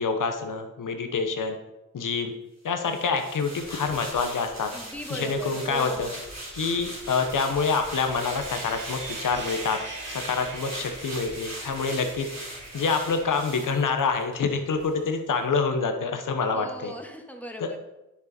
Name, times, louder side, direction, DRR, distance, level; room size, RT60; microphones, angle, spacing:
voice 1, 0.0-1.6 1.9-2.3 2.6-4.7 5.1-6.1 6.5-12.3 12.7-16.9 17.6-17.8, left 4 dB, 90° left, 6 dB, 1.1 m, -27 dB
sound 1, 2.8-14.4 14.7-14.9, right 1 dB, 60° right, 3.6 m, -40 dB
voice 2, 4.7-6.2 16.5-17.8, equal, 5° left, 2 dB, 1.9 m, -38 dB
Sawing, 6.8-14.2, right 2 dB, 75° right, 2.0 m, -42 dB
9.6 x 7.0 x 4.4 m, 0.97 s
cardioid pair, 50°, 31 cm